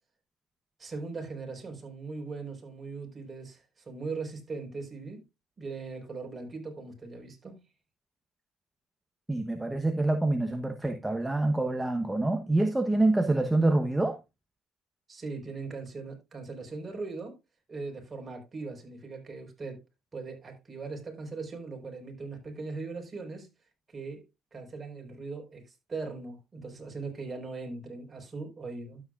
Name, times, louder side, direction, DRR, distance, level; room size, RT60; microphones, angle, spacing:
voice 1, 0.8-5.2 5.6-7.6 15.1-17.4 17.7-19.8 20.1-23.5 23.9-24.2 24.5-29.0, right 3 dB, 25° right, 4.7 m, -39 dB
voice 2, 9.3-14.2, right 2 dB, 10° right, 1.0 m, -26 dB
12.0 x 8.3 x 2.5 m
supercardioid pair, 95°, 0 cm